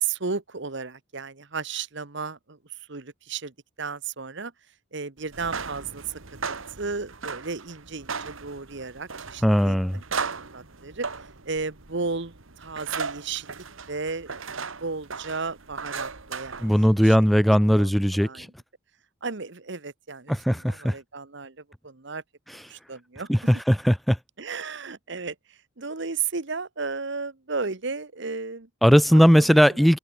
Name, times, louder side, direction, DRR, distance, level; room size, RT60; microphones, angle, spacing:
voice 1, 0.0-2.6 2.9-3.5 3.8-4.5 4.9-6.2 6.8-10.0 10.5-11.1 11.5-14.3 14.8-18.5 19.2-21.6 21.8-22.2 22.7-23.5 24.4-25.3 25.8-28.7 29.1-29.9, right 4 dB, 60° right, 1.3 m, -34 dB
sound 1, 5.3-17.2, right 5 dB, 75° right, 2.0 m, -37 dB
voice 2, 9.4-10.0 16.6-18.5 20.3-21.0 23.3-24.2 28.8-30.0, equal, ahead, 0.4 m, -19 dB
head